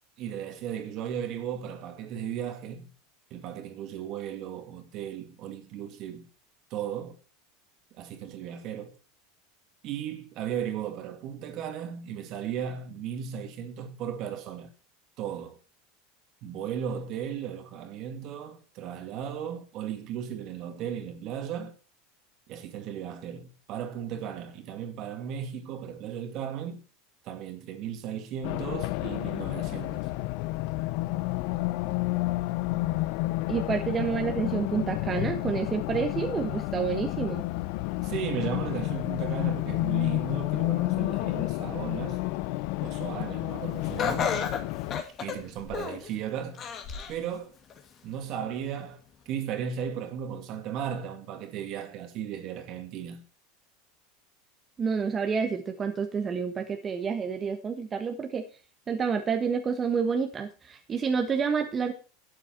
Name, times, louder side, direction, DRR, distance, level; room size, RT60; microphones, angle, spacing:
voice 1, 0.2-2.9 3.3-6.3 6.7-7.2 7.9-9.0 9.8-14.7 15.2-15.6 16.4-21.8 22.5-26.8 27.2-30.1 38.0-42.2 42.8-44.4 45.2-46.7 47.1-47.6 48.0-53.2, right 8 dB, 50° right, 2.3 m, -36 dB
Race car auto racing, 28.4-45.0, left 19 dB, 65° left, 0.6 m, -30 dB
voice 2, 33.5-37.4 54.8-58.4 58.9-61.9, right 6 dB, 25° right, 1.4 m, -29 dB
Laughter, 44.0-46.1 46.6-47.2 47.7-47.8 48.8-48.9, left 7 dB, 35° left, 2.4 m, -31 dB
12.0 x 8.9 x 4.5 m
supercardioid pair, 125°, 0 cm